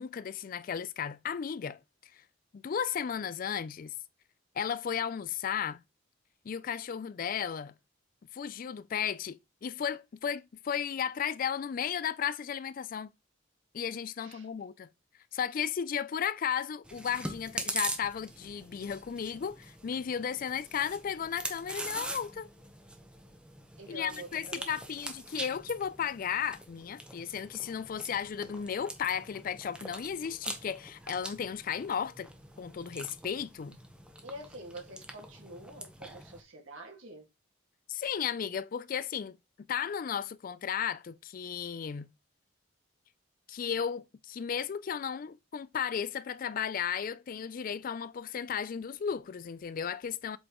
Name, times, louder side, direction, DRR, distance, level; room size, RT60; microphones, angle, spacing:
voice 1, 0.0-2.2 2.5-3.9 4.6-5.8 6.4-7.7 8.3-13.1 13.7-14.9 15.3-22.5 23.9-32.3 32.6-33.8 37.9-42.1 43.5-50.4, left 8 dB, 45° left, 0.3 m, -34 dB
Chewing mastication, 16.8-36.4, right 1 dB, 5° right, 0.9 m, -43 dB
voice 2, 23.8-24.7 34.2-37.3, right 1 dB, 80° right, 2.0 m, -46 dB
7.8 x 4.2 x 3.0 m
head